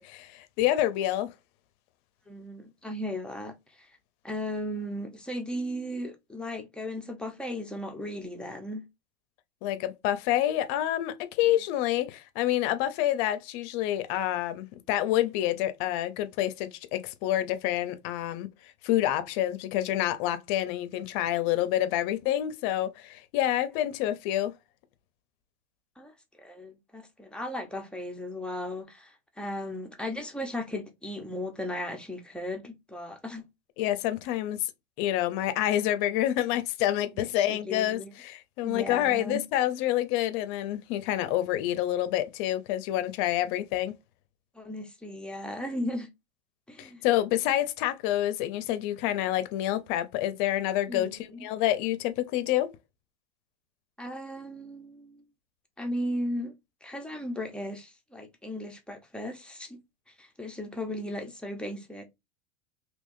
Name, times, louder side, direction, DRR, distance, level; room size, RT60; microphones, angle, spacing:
voice 1, 0.0-1.3 9.6-18.5 18.8-24.5 33.8-34.7 35.0-43.9 46.8-52.7, left 13 dB, 50° left, 0.7 m, -28 dB
voice 2, 2.3-3.9 4.2-8.8 26.0-33.4 37.1-38.1 38.6-39.4 44.5-46.1 46.7-47.0 50.9-51.4 54.0-55.2 55.8-56.5 56.8-59.8 60.2-62.0, left 1 dB, 5° left, 0.8 m, -36 dB
3.4 x 3.0 x 2.6 m
hypercardioid pair, 120°, 32 cm